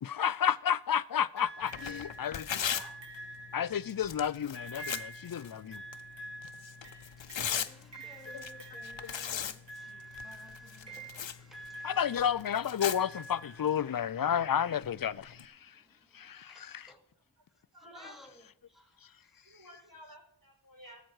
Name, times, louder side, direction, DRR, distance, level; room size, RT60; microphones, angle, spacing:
voice 1, 0.0-2.5 3.5-5.8 8.3-8.4 9.0-9.1 11.8-15.7 16.1-16.9, left 8 dB, 55° left, 0.5 m, -31 dB
sound 1, 1.4-14.2 15.2-15.3, right 1 dB, 75° right, 3.3 m, -47 dB
Tearing, 1.6-15.5, left 8 dB, 90° left, 0.7 m, -41 dB
voice 2, 7.2-12.3 15.6-17.0 17.7-19.5, left 1 dB, ahead, 2.2 m, -58 dB
voice 3, 17.7-18.1 19.4-21.0, equal, 50° right, 4.9 m, -53 dB
18.5 x 7.7 x 4.7 m
wide cardioid pair, 55°, 44 cm